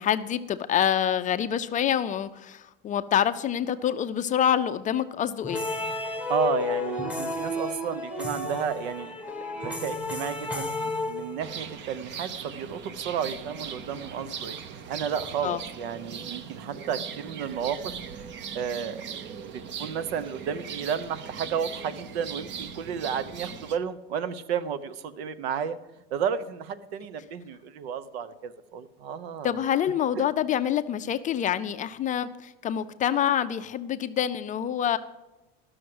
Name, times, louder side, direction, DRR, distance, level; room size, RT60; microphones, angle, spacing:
voice 1, 0.0-5.6 15.4-15.6 29.4-35.0, left 9 dB, 25° left, 11 dB, 0.4 m, -26 dB
sound 1, 5.4-11.7, left 3 dB, 5° right, 1.3 m, -32 dB
voice 2, 6.3-9.1 9.5-14.6 14.9-17.9 18.5-19.0 19.8-25.8 26.1-29.6 30.2-30.3, right 7 dB, 85° right, 15 dB, 0.9 m, -32 dB
sound 2, 11.4-23.8, right 7 dB, 40° right, 0.8 m, -39 dB
12.5 x 6.3 x 7.8 m, 1.0 s
supercardioid pair, 135°, 30 cm